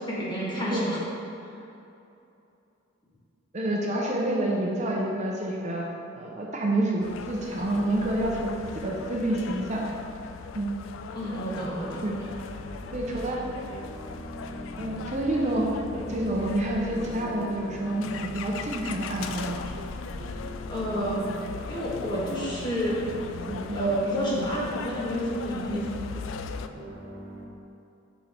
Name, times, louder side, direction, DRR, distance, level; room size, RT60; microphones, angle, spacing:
voice 1, 0.1-1.0 11.1-12.1 20.7-21.3 21.7-23.0 23.7-26.0, equal, 25° left, -7 dB, 1.5 m, -29 dB
voice 2, 3.5-5.8 6.1-9.8 10.5-10.7 12.0-12.2 12.9-13.4 14.8-15.7 15.9-19.7 23.5-24.0 25.7-25.9, right 1 dB, 35° right, -2 dB, 0.7 m, -28 dB
sound 1, 7.0-26.7, left 6 dB, 85° left, 0.3 m, -39 dB
sound 2, 11.6-27.5, right 1 dB, 65° right, 1.0 m, -42 dB
5.5 x 5.5 x 4.3 m, 2.8 s
head